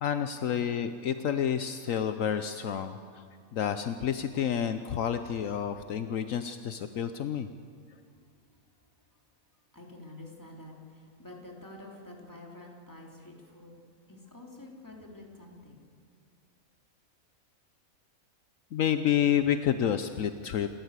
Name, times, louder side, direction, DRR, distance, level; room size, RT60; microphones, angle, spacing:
voice 1, 0.0-3.2 3.5-7.5 18.7-20.7, left 9 dB, 70° left, 9 dB, 1.1 m, -29 dB
voice 2, 9.7-13.8 14.1-15.8, left 2 dB, 15° left, -1 dB, 3.3 m, -48 dB
28.0 x 13.5 x 8.2 m, 2.4 s
omnidirectional pair, 1.4 m